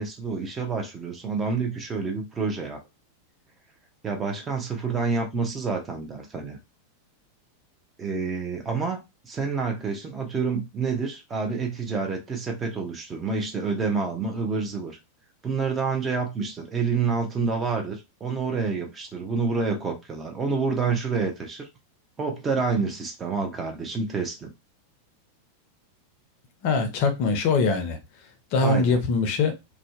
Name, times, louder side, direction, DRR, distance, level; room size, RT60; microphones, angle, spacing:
voice 1, 0.0-2.8 4.0-6.6 8.0-15.0 15.4-21.7 22.2-24.5 28.6-29.0, right 4 dB, 20° right, 0.7 m, -28 dB
voice 2, 26.6-28.0 28.5-29.5, left 4 dB, 45° left, 0.6 m, -22 dB
2.6 x 2.1 x 2.4 m
figure-of-eight pair, 90°, 0 cm